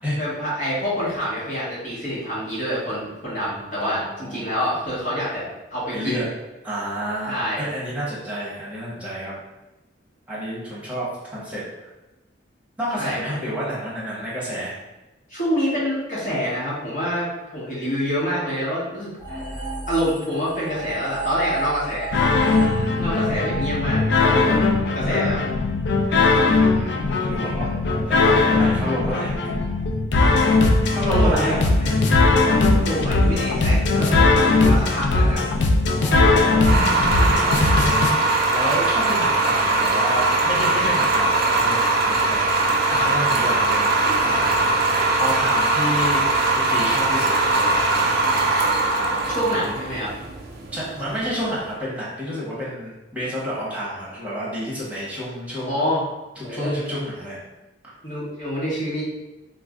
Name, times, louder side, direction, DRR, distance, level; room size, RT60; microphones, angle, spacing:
voice 1, 0.2-6.2 7.3-7.6 13.0-13.3 15.3-19.1 19.9-22.1 23.0-24.6 24.9-25.4 30.5-32.0 32.4-35.4 49.3-50.1 55.6-56.0 56.4-56.8 58.0-59.0, equal, 45° left, -8 dB, 1.1 m, -27 dB
voice 2, 3.8-4.5 5.9-6.3 6.6-9.4 10.3-11.9 12.8-14.7 22.4-23.2 26.4-29.5 30.8-31.7 35.9-42.4 42.9-48.3 50.7-55.7 56.5-57.4, equal, 10° right, -8 dB, 0.9 m, -30 dB
sound 1, 19.2-24.6, right 4 dB, 25° left, 1.2 m, -32 dB
sound 2, 22.1-38.1, left 3 dB, 70° left, 0.3 m, -19 dB
sound 3, 36.7-51.6, right 2 dB, 55° right, 0.4 m, -21 dB
2.4 x 2.0 x 3.5 m, 1.1 s
head